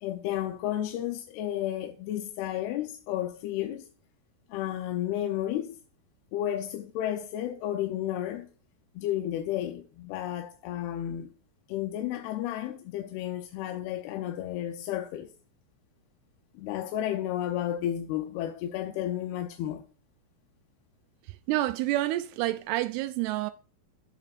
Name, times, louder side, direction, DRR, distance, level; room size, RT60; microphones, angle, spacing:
voice 1, 0.0-3.9 4.5-5.8 6.3-8.5 9.0-11.3 11.7-15.3 16.6-19.8, left 12 dB, 85° left, 2.7 m, -32 dB
voice 2, 21.2-23.5, right 16 dB, 90° right, 2.5 m, -29 dB
14.5 x 7.5 x 2.5 m
omnidirectional pair, 4.5 m